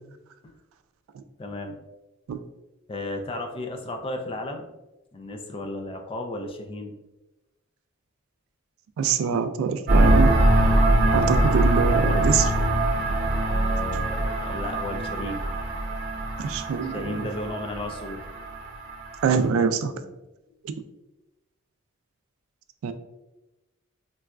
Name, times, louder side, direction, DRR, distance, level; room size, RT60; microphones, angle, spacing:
voice 1, 1.4-1.8 2.9-4.7 5.1-7.0 13.5-15.4 16.8-18.3 19.9-20.1, left 2 dB, 25° left, 4 dB, 0.3 m, -34 dB
voice 2, 9.0-10.3 11.1-12.5 16.4-17.2 19.2-19.9 22.8-22.9, right 6 dB, 85° right, 13 dB, 0.3 m, -24 dB
sound 1, 9.9-19.4, right 1 dB, 50° right, 0.7 m, -23 dB
3.9 x 2.2 x 2.3 m, 1.0 s
head